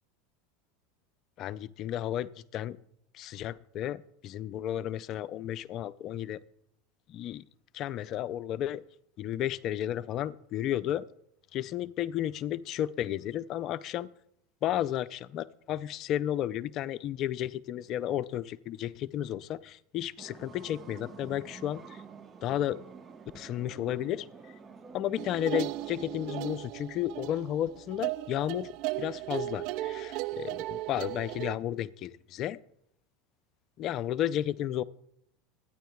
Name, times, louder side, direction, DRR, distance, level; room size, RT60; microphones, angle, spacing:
voice 1, 1.4-2.8 3.1-6.4 7.1-7.4 7.7-8.8 9.2-11.0 11.5-14.1 14.6-22.0 22.4-22.8 23.3-24.3 24.9-32.6 33.8-34.8, left 11 dB, 50° left, 16 dB, 0.5 m, -33 dB
sound 1, 20.2-26.6, right 5 dB, 30° right, 1.0 m, -49 dB
sound 2, 25.2-31.6, right 18 dB, 60° right, 0.3 m, -36 dB
24.0 x 10.0 x 2.3 m, 0.74 s
hypercardioid pair, 90°, 0 cm